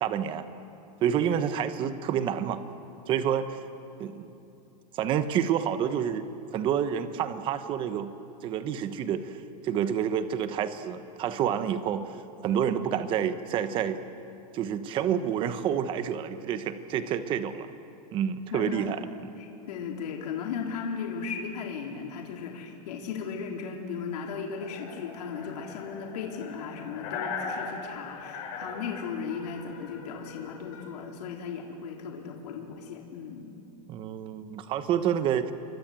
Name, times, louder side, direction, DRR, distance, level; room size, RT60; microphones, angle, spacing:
voice 1, 0.0-0.4 1.0-2.6 3.1-3.6 4.0-4.3 4.9-8.1 8.4-9.4 9.6-12.0 12.4-14.0 14.5-17.7 18.1-19.4 33.9-35.5, right 9 dB, 25° right, 11 dB, 1.1 m, -28 dB
voice 2, 18.5-18.9 19.4-33.5, left 6 dB, 70° left, 0 dB, 3.6 m, -36 dB
sound 1, 24.5-30.8, left 5 dB, 40° left, 6.4 m, -39 dB
28.5 x 23.5 x 7.7 m, 2.8 s
supercardioid pair, 165°, 21 cm